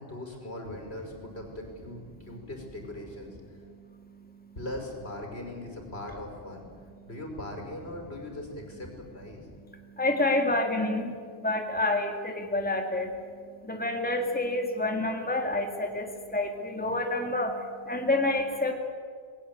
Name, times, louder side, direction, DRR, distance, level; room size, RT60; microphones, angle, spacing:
voice 1, 0.0-3.6 4.6-9.5, left 1 dB, 75° left, 2 dB, 5.5 m, -40 dB
voice 2, 3.7-4.5 9.7-18.7, left 2 dB, 10° left, 3 dB, 2.2 m, -29 dB
28.0 x 21.0 x 8.5 m, 2.1 s
omnidirectional pair, 1.1 m